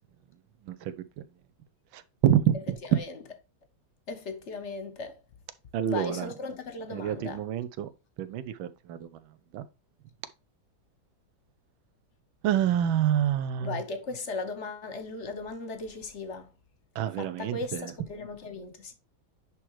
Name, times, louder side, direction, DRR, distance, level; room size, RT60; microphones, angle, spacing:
voice 1, 0.7-1.2 1.9-3.0 5.7-6.3 6.9-7.9 8.2-9.1 9.5-9.6 12.4-13.8 16.9-17.9, right 10 dB, 85° right, 1.5 m, -27 dB
voice 2, 4.1-5.2 5.8-7.4 13.6-16.5 17.1-18.9, left 3 dB, 50° left, 0.9 m, -37 dB
10.0 x 3.5 x 3.1 m
omnidirectional pair, 2.1 m